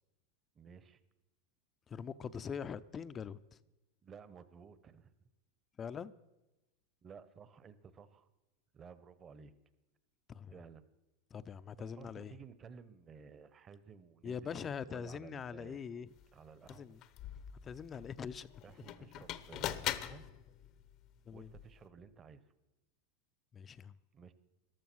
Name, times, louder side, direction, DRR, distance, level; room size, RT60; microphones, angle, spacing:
voice 1, 0.5-1.0 4.0-5.1 7.0-8.3 8.7-9.5 10.5-10.8 11.9-15.8 16.3-17.0 18.6-20.3 21.3-22.4 24.1-24.3, right 6 dB, 30° right, 15 dB, 1.1 m, -55 dB
voice 2, 1.9-3.4 5.8-6.1 10.3-10.5 11.3-12.3 14.2-16.1 16.7-17.0 17.6-18.5 21.3-21.5 23.5-23.9, left 7 dB, 25° left, 14 dB, 0.6 m, -43 dB
sound 1, 16.2-16.3 16.6-21.9, left 12 dB, 50° left, 0.8 m, -43 dB
14.5 x 12.0 x 6.2 m, 1.0 s
supercardioid pair, 115°, 0 cm